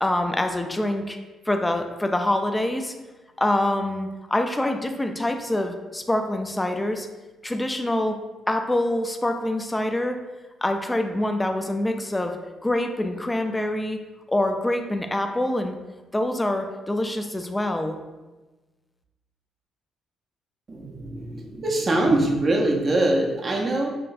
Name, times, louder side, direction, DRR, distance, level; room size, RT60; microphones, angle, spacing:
voice 1, 0.0-1.2 1.5-2.9 3.4-7.1 7.4-8.2 8.5-10.2 10.6-12.4 12.6-14.0 14.3-15.8 16.1-18.0, left 1 dB, 10° left, 5 dB, 0.4 m, -25 dB
voice 2, 20.7-23.9, right 1 dB, 40° right, -1 dB, 0.6 m, -23 dB
5.8 x 2.2 x 2.5 m, 1.1 s
cardioid pair, 90°, 0 cm